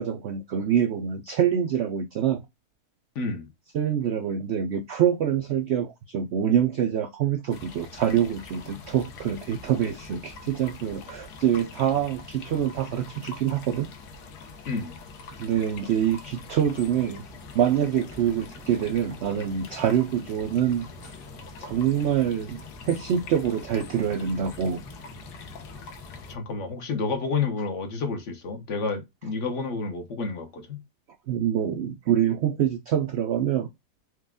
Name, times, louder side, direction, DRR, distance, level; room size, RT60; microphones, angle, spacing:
voice 1, 0.0-2.4 3.7-13.9 15.4-17.2 17.5-21.2 21.6-22.6 22.9-24.8 31.3-33.7, right 9 dB, 80° right, 0.6 m, -25 dB
voice 2, 3.1-3.5 14.7-15.0 26.3-30.8, left 4 dB, 55° left, 1.0 m, -30 dB
sound 1, 7.5-26.3, left 4 dB, 80° left, 1.3 m, -44 dB
sound 2, 16.6-26.6, equal, 5° left, 0.7 m, -49 dB
4.6 x 2.2 x 3.5 m
omnidirectional pair, 1.7 m